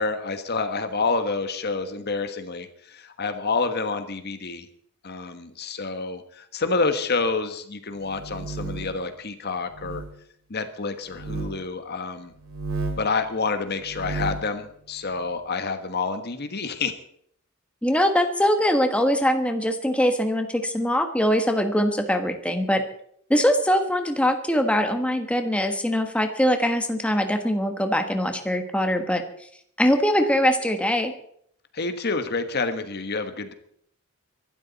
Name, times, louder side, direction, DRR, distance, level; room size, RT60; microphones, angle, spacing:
voice 1, 0.0-4.7 5.0-10.0 10.5-12.3 13.0-17.0 31.7-33.5, left 4 dB, 45° left, 8 dB, 1.4 m, -28 dB
sound 1, 8.0-9.0 9.7-10.1 11.1-11.5 12.4-13.1 13.8-14.5, right 3 dB, 60° right, 3.5 m, -32 dB
voice 2, 17.8-22.8 23.3-29.2 29.8-31.1, equal, 5° left, 5 dB, 1.3 m, -22 dB
24.0 x 12.5 x 4.1 m, 0.67 s
head